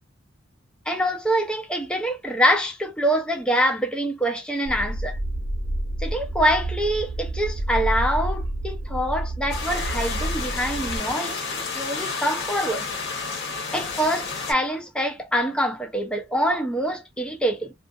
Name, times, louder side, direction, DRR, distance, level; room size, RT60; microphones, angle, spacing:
voice 1, 0.9-5.2 6.0-12.9 13.7-17.7, equal, 5° left, 0.5 m, -25 dB
sound 1, 4.7-11.0, right 1 dB, 45° right, 0.9 m, -29 dB
sound 2, 9.5-14.5, left 4 dB, 60° left, 1.1 m, -31 dB
2.4 x 2.4 x 2.3 m
head